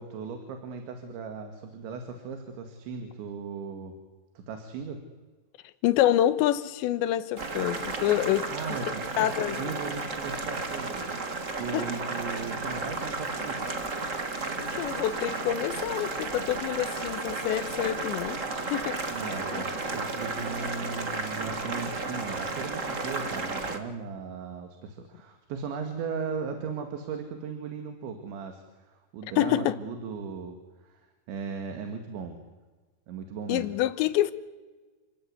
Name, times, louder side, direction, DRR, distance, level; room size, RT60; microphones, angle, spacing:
voice 1, 0.0-4.0 4.4-5.0 8.5-11.1 11.5-13.6 19.1-30.6 30.8-31.0 31.3-32.4 33.1-33.7, right 5 dB, 85° right, 4.4 m, -37 dB
voice 2, 5.8-8.5 9.2-9.7 11.7-11.8 14.6-18.4 18.7-19.0 19.5-19.6 29.4-29.8 33.5-34.3, left 13 dB, 85° left, 3.3 m, -27 dB
Boiling, 7.4-23.8, right 3 dB, 60° right, 0.7 m, -33 dB
30.0 x 16.5 x 9.7 m
omnidirectional pair, 5.1 m